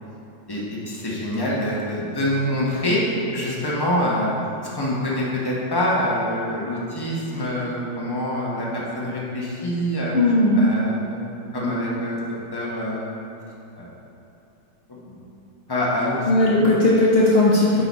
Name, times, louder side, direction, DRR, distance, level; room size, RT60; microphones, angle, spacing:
voice 1, 0.5-3.0 3.3-4.3 4.7-10.2 10.6-12.3 12.5-13.1 13.8-13.9 14.9-15.1 15.7-16.7 17.8-17.9, left 1 dB, 15° left, -6 dB, 0.9 m, -25 dB
voice 2, 10.1-10.6 16.3-17.8, left 1 dB, 70° left, -5 dB, 0.5 m, -17 dB
9.3 x 3.9 x 4.1 m, 2.8 s
omnidirectional pair, 2.0 m